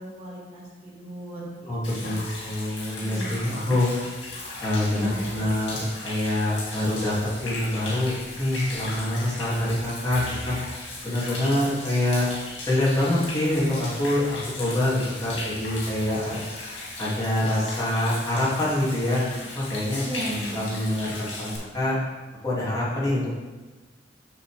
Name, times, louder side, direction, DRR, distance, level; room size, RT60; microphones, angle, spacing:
voice 1, 0.0-2.1 3.0-3.7 4.9-5.4 20.0-20.7, equal, 40° right, -7 dB, 2.0 m, -36 dB
voice 2, 1.6-3.9 4.6-10.6 11.0-12.3 12.7-16.4 17.0-19.2 19.6-21.9 22.4-23.3, left 1 dB, 20° left, -7 dB, 2.1 m, -25 dB
Human voice / Rain / Stream, 1.8-21.6, left 2 dB, 90° left, 2.0 m, -37 dB
6.8 x 6.8 x 3.2 m, 1.2 s
head